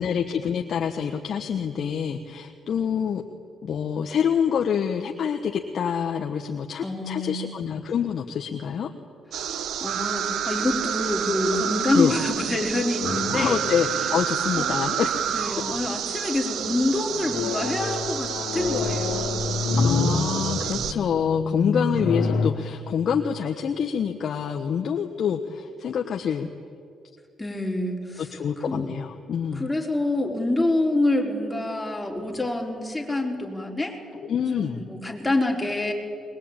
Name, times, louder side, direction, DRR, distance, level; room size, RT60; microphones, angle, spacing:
voice 1, 0.0-3.2 3.6-8.9 11.9-12.1 13.3-15.3 19.8-26.5 28.2-29.7 34.2-34.8, left 7 dB, 60° left, 3 dB, 1.3 m, -26 dB
voice 2, 6.8-7.4 9.3-13.6 14.6-14.7 15.3-19.5 27.4-28.3 28.7-28.9 29.5-34.0 34.5-35.9, left 2 dB, 10° left, 0 dB, 4.5 m, -26 dB
sound 1, 9.3-20.9, right 9 dB, 75° right, 1.0 m, -29 dB
sound 2, 13.0-14.8 15.4-15.8 16.6-22.5, left 4 dB, 85° left, 2.4 m, -28 dB
21.5 x 21.5 x 9.0 m, 2.3 s
cardioid pair, 90°, 0 cm